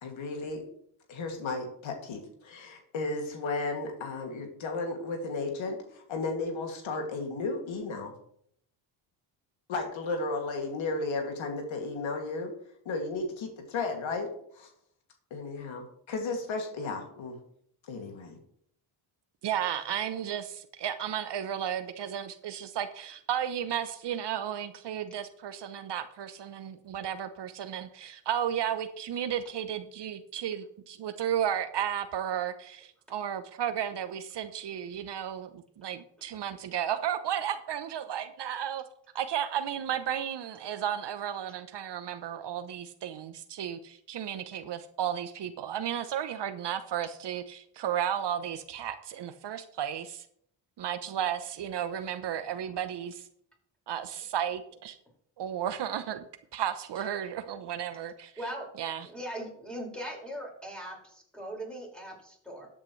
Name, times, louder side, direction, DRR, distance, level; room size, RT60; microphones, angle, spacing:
voice 1, 0.0-0.6 1.1-8.1 9.7-12.5 12.8-14.7 15.3-17.4 17.8-18.4, left 3 dB, 70° left, 3 dB, 2.5 m, -34 dB
voice 2, 19.4-38.8 39.1-50.3 50.8-53.3 53.9-55.0 55.4-56.2 56.5-58.3 58.8-59.1, right 9 dB, 55° right, 11 dB, 0.9 m, -33 dB
voice 3, 58.4-58.7 59.0-62.7, equal, ahead, -2 dB, 5.3 m, -40 dB
13.5 x 8.9 x 3.2 m, 0.66 s
cardioid pair, 75°, 48 cm